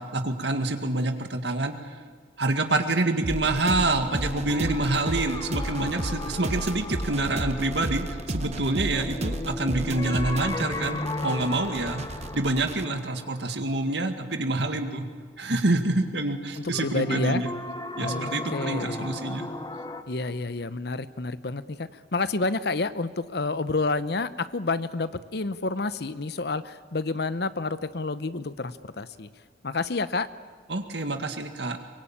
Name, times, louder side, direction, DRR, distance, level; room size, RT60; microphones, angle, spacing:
voice 1, 0.0-1.9 2.4-12.0 12.3-15.1 15.4-17.5 18.0-19.5 30.7-31.8, right 2 dB, 75° right, 6 dB, 2.0 m, -27 dB
sound 1, 3.2-12.8, right 1 dB, 40° right, 1.1 m, -33 dB
sound 2, 3.8-14.6 16.7-20.0, left 2 dB, 20° left, 1.1 m, -36 dB
voice 2, 16.6-17.4 18.0-19.1 20.1-29.3 29.6-30.3, left 3 dB, 65° left, 14 dB, 0.9 m, -29 dB
23.5 x 23.0 x 8.9 m, 1.5 s
head